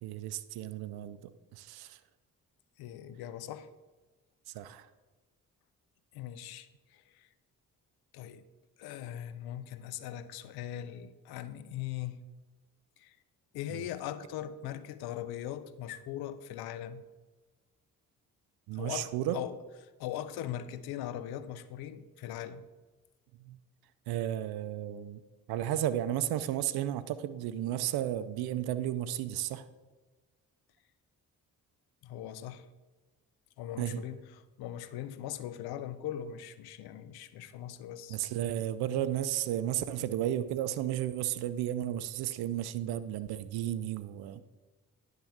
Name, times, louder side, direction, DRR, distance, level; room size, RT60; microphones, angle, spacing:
voice 1, 0.0-2.0 4.5-4.9 13.7-13.9 18.7-19.4 23.4-23.6 24.1-25.2 25.5-29.7 33.8-34.0 38.1-44.4, right 12 dB, 85° right, 0.5 m, -33 dB
voice 2, 2.8-3.7 6.1-7.3 8.1-8.4 8.8-12.2 13.0-13.2 13.5-17.0 18.7-19.5 20.0-22.6 32.0-32.7 33.6-34.2 34.6-38.2, left 11 dB, 85° left, 0.6 m, -40 dB
10.5 x 3.7 x 7.2 m
supercardioid pair, 50°, 37 cm